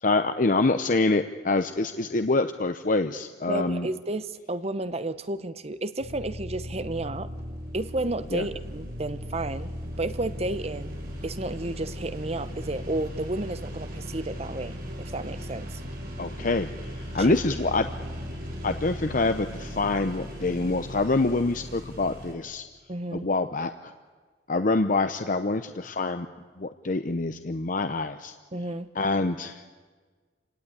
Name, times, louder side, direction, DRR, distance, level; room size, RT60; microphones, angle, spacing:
voice 1, 0.0-3.9 8.3-8.4 16.2-17.9 18.6-22.6 23.2-23.9 24.5-26.3 26.6-28.3 28.9-29.6, left 3 dB, 50° left, 8 dB, 0.8 m, -26 dB
voice 2, 3.5-7.3 7.7-11.0 11.2-15.8 17.2-17.4 17.7-17.8 22.9-23.3 28.5-28.9, right 2 dB, 35° right, 13 dB, 0.9 m, -32 dB
sound 1, 6.0-22.3, equal, 55° right, 5.2 m, -37 dB
27.5 x 18.0 x 9.8 m, 1.5 s
head